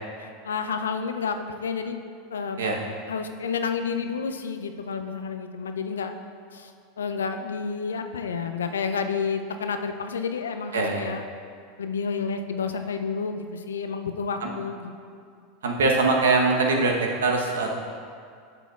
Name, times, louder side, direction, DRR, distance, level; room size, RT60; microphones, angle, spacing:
voice 1, 0.2-2.6 3.1-6.1 6.5-6.7 7.0-11.2 11.8-14.9, left 5 dB, 75° left, 7 dB, 0.5 m, -30 dB
voice 2, 15.6-16.9 17.2-17.7, right 3 dB, 70° right, 1 dB, 0.9 m, -22 dB
11.5 x 6.9 x 2.4 m, 2.2 s
figure-of-eight pair, 80°, 0 cm